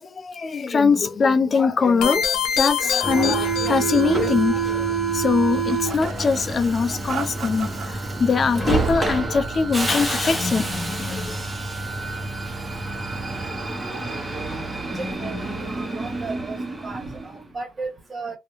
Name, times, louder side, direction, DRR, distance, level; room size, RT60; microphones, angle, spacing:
voice 1, 0.0-11.5, left 5 dB, 40° left, 0.5 m, -22 dB
sound 1, 2.0-4.3, left 7 dB, 90° left, 0.5 m, -25 dB
Subway metro underground, 3.0-17.4, right 4 dB, 15° right, 0.8 m, -27 dB
sound 2, 5.6-6.4 7.0-7.9 8.5-9.2 9.5-10.1, right 6 dB, 60° right, 0.6 m, -36 dB
voice 2, 14.9-16.6 16.8-18.4, right 3 dB, 35° right, 1.2 m, -35 dB
2.4 x 2.2 x 3.0 m
cardioid pair, 90°, 0 cm